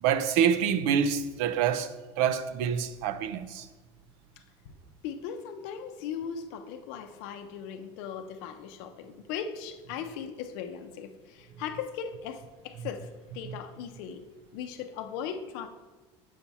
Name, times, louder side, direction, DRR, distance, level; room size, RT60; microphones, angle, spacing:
voice 1, 0.0-3.7 13.5-13.6, right 8 dB, 75° right, 0.5 m, -27 dB
voice 2, 5.0-14.2 14.5-15.7, left 7 dB, 75° left, 0.6 m, -38 dB
7.2 x 2.7 x 5.8 m
supercardioid pair, 105°, 14 cm